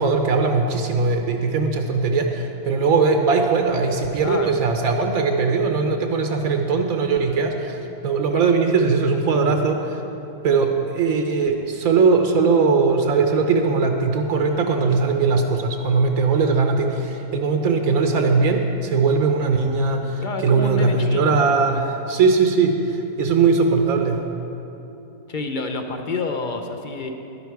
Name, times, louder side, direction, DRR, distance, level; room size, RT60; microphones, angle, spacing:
voice 1, 0.0-10.0 10.4-24.2, right 4 dB, 85° right, 4 dB, 1.2 m, -20 dB
voice 2, 4.2-4.5 20.2-21.4 25.3-27.1, left 3 dB, 45° left, 5 dB, 0.7 m, -28 dB
11.0 x 11.0 x 4.6 m, 2.9 s
omnidirectional pair, 1.4 m